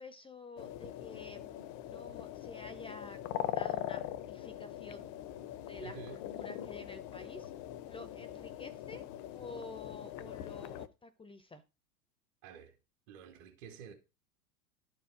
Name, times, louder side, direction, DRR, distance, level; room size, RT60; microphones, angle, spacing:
voice 1, 0.0-1.6 1.9-5.1 5.7-7.5 7.9-9.0 9.3-11.6, left 3 dB, 10° left, 0.8 m, -50 dB
sound 1, 0.6-10.9, left 12 dB, 40° left, 0.9 m, -42 dB
voice 2, 5.8-6.3 12.4-12.7 13.1-13.9, right 7 dB, 50° right, 2.5 m, -49 dB
12.0 x 4.6 x 5.0 m
figure-of-eight pair, 95°, 46 cm